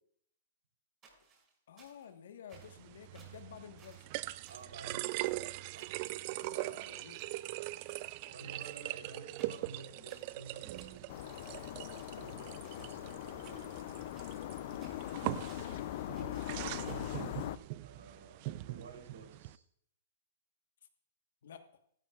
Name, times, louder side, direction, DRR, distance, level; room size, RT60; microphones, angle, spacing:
sound 1, 1.0-2.2 2.5-2.8 3.1-3.4 3.8-4.2 4.5-4.8 5.1-5.4 5.7-6.8 7.1-7.6 7.9-8.2 8.6-9.0 9.4-10.4 10.7-11.7 12.0-13.0 13.4-13.8 14.1-15.8 16.1-17.2, right 4 dB, 25° right, 6.3 m, -62 dB
voice 1, 1.7-4.1 6.3-7.3 8.2-9.2 21.4-21.7, left 8 dB, 70° left, 8 dB, 1.4 m, -53 dB
sound 2, 2.5-19.6, right 18 dB, 45° right, 0.4 m, -42 dB
voice 2, 4.5-5.3 5.7-5.9 6.5-7.2 8.3-11.0 11.4-13.9 16.1-17.1 17.8-19.6, right 4 dB, 80° right, 4 dB, 3.4 m, -52 dB
sound 3, 11.1-17.6, left 14 dB, 55° left, 0.5 m, -41 dB
15.5 x 14.0 x 2.4 m, 0.68 s
hypercardioid pair, 130°, 0 cm